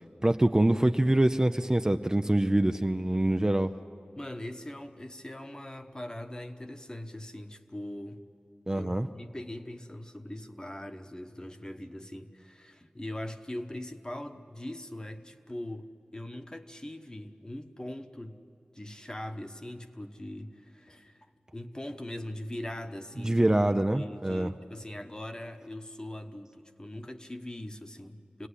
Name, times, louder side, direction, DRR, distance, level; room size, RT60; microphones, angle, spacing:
voice 1, 0.2-3.7 8.7-9.1 23.2-24.5, right 1 dB, 20° right, 7 dB, 0.5 m, -25 dB
voice 2, 4.2-8.2 8.7-18.4 18.7-21.3 21.5-23.5 23.9-28.5, left 1 dB, 25° left, 7 dB, 1.2 m, -41 dB
26.5 x 18.0 x 9.9 m, 2.6 s
wide cardioid pair, 70°, 3 cm